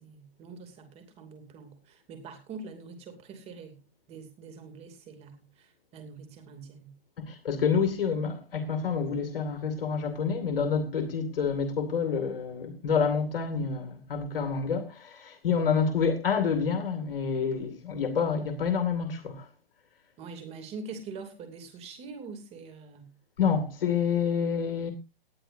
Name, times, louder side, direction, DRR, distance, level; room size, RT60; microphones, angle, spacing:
voice 1, 0.0-3.8 4.1-6.9 20.2-23.1, right 4 dB, 20° right, 2.8 m, -44 dB
voice 2, 7.2-19.5 23.4-24.9, left 6 dB, 65° left, 2.4 m, -28 dB
19.0 x 9.9 x 2.7 m
hypercardioid pair, 150°, 30 cm